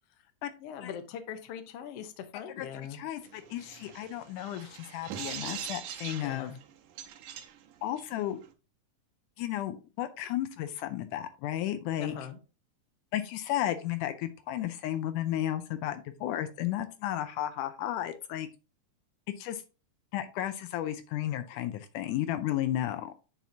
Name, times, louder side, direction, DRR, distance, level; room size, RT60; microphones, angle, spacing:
voice 1, 0.6-3.0 6.2-6.6 12.0-12.4, left 8 dB, 65° left, 7 dB, 1.7 m, -41 dB
voice 2, 2.6-6.5 7.8-8.4 9.4-12.1 13.1-18.5 19.4-19.6 20.1-23.1, left 12 dB, 80° left, 10 dB, 2.1 m, -33 dB
sound 1, 3.2-8.5, right 10 dB, 85° right, 2.4 m, -43 dB
9.1 x 5.8 x 2.8 m, 0.33 s
omnidirectional pair, 3.6 m